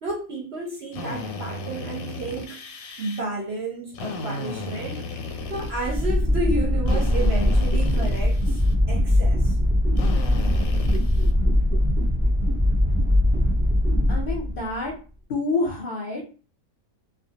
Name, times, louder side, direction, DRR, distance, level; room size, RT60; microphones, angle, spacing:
voice 1, 0.0-2.6 3.0-5.0 5.5-8.6 8.9-9.6, right 2 dB, 60° right, 0.8 m, -31 dB
Drill, 0.9-3.2 3.9-6.2 6.9-8.8 10.0-11.3, left 2 dB, 90° left, 1.0 m, -35 dB
sound 1, 5.4-14.9, left 1 dB, 25° right, 0.8 m, -21 dB
voice 2, 14.1-14.9 15.3-16.4, left 3 dB, 50° left, 0.7 m, -28 dB
2.2 x 2.2 x 2.7 m
omnidirectional pair, 1.4 m